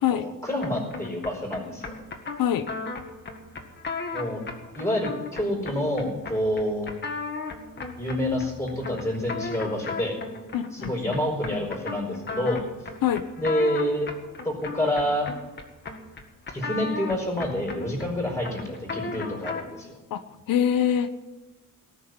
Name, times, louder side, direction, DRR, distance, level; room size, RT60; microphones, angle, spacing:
voice 1, 0.1-1.9 4.1-4.4 4.7-6.9 8.0-10.2 10.7-12.6 13.4-14.1 14.4-15.3 16.5-20.0, left 1 dB, 10° left, -1 dB, 4.8 m, -28 dB
sound 1, 0.6-19.8, left 4 dB, 30° left, 1.9 m, -36 dB
voice 2, 10.5-11.2 13.0-13.2 20.1-20.2 20.5-21.1, left 9 dB, 90° left, 9 dB, 1.0 m, -24 dB
18.5 x 6.6 x 9.4 m, 1.1 s
wide cardioid pair, 160°, 33 cm